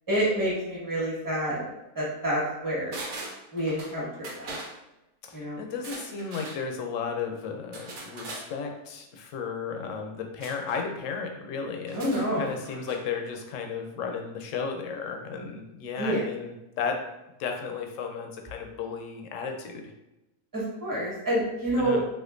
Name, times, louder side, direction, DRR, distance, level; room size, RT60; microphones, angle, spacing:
voice 1, 0.1-1.6 1.9-3.0 3.5-4.5 5.3-5.7 11.9-12.6 15.9-16.2 20.5-22.0, right 1 dB, 15° right, -7 dB, 1.2 m, -28 dB
sound 1, 2.9-3.9 4.2-4.7 5.7-6.6 7.7-8.5 10.4-10.8 11.8-13.0 13.3-13.4, right 2 dB, 90° right, 1.2 m, -40 dB
voice 2, 5.2-17.0 17.4-19.8 21.8-22.0, left 5 dB, 70° left, 3 dB, 0.9 m, -34 dB
4.3 x 2.5 x 2.5 m, 0.93 s
omnidirectional pair, 1.5 m